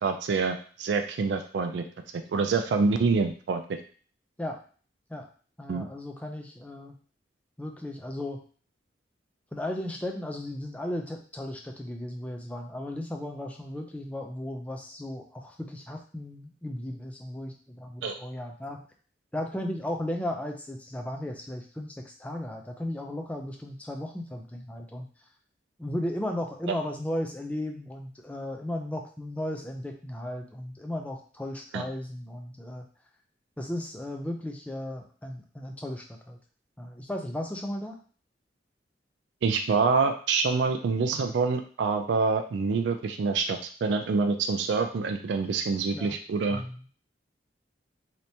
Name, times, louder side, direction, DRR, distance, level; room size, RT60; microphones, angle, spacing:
voice 1, 0.0-1.8 2.1-3.6 5.7-5.8 18.0-18.2 26.7-26.8 31.7-31.8 39.4-46.6, right 4 dB, 70° right, 5 dB, 0.3 m, -26 dB
voice 2, 5.6-7.0 7.6-8.4 9.5-18.8 19.3-25.1 25.8-32.9 33.6-36.4 36.8-38.0 45.9-46.2 46.5-46.8, left 1 dB, 10° left, 2 dB, 0.4 m, -35 dB
3.3 x 2.8 x 2.7 m, 0.42 s
head